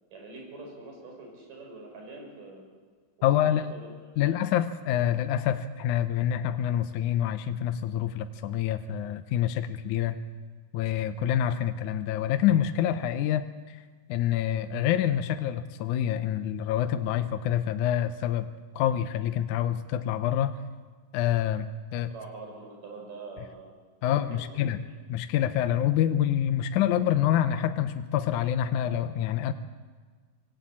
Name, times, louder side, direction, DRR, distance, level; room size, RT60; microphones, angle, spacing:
voice 1, 0.1-2.6 3.2-4.3 22.1-23.7 24.0-24.7, right 3 dB, 65° right, 0 dB, 7.3 m, -44 dB
voice 2, 3.2-3.7 4.2-10.2 10.7-13.8 14.1-18.5 18.8-20.6 21.1-22.1 24.0-24.8 25.1-29.5, left 10 dB, 75° left, 9 dB, 2.0 m, -27 dB
25.0 x 17.5 x 8.6 m, 1.5 s
omnidirectional pair, 4.0 m